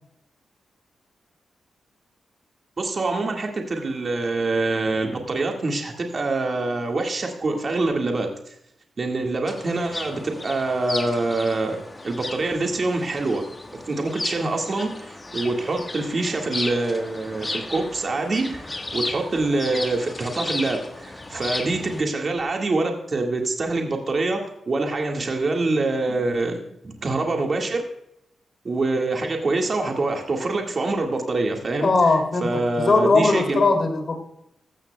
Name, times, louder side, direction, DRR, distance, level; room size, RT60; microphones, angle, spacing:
voice 1, 2.8-8.5 9.0-13.4 13.7-27.8 28.6-31.9 32.4-33.6, right 2 dB, 40° right, 2 dB, 1.7 m, -25 dB
sound 1, 9.5-22.0, left 2 dB, 25° left, 1.3 m, -34 dB
voice 2, 31.8-34.2, left 3 dB, 45° left, 4 dB, 2.6 m, -20 dB
15.0 x 13.0 x 2.2 m, 0.77 s
wide cardioid pair, 120°, 0 cm